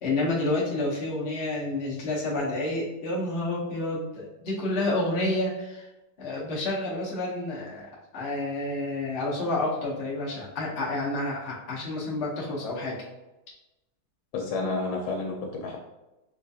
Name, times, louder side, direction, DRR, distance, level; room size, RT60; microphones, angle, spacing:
voice 1, 0.0-5.9 6.2-7.9 8.1-13.0, left 2 dB, 70° left, -6 dB, 0.6 m, -29 dB
voice 2, 14.3-15.8, left 3 dB, 90° left, 0 dB, 1.4 m, -30 dB
4.3 x 2.3 x 2.6 m, 1.0 s
omnidirectional pair, 2.3 m